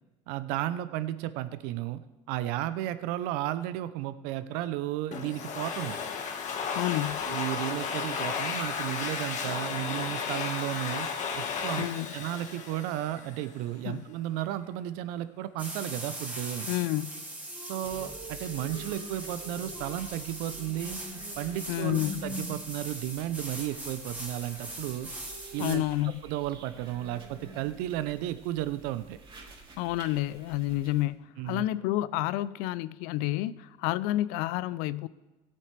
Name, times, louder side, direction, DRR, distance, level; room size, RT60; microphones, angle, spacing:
voice 1, 0.3-2.0 2.3-6.0 7.3-11.1 11.4-11.8 12.1-16.7 17.6-21.0 21.4-25.1 25.5-25.8 26.2-29.2 31.4-31.7, right 13 dB, 75° right, 0.6 m, -33 dB
Domestic sounds home sounds, 5.1-13.5, left 6 dB, 50° left, 1.6 m, -34 dB
voice 2, 6.7-7.2 11.8-12.1 13.8-14.0 16.7-17.1 21.7-22.1 25.6-26.2 29.8-35.1, left 16 dB, 75° left, 0.5 m, -29 dB
sound 1, 15.6-25.8, right 1 dB, 10° right, 2.5 m, -40 dB
sound 2, 17.8-31.0, equal, 35° right, 4.7 m, -48 dB
16.5 x 8.5 x 3.3 m
supercardioid pair, 80°, 15 cm